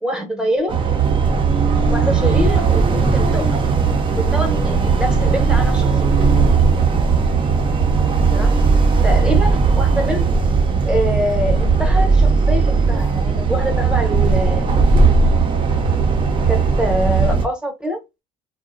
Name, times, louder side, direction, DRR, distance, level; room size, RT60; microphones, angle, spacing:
voice 1, 0.0-0.7 1.9-3.6 4.1-6.3 8.3-8.7 9.0-10.4 10.8-14.7 16.5-18.0, equal, 5° right, 0.9 m, -25 dB
sound 1, 0.7-17.5, right 4 dB, 30° right, 0.6 m, -17 dB
2.6 x 2.1 x 2.4 m
cardioid pair, 110°, 17 cm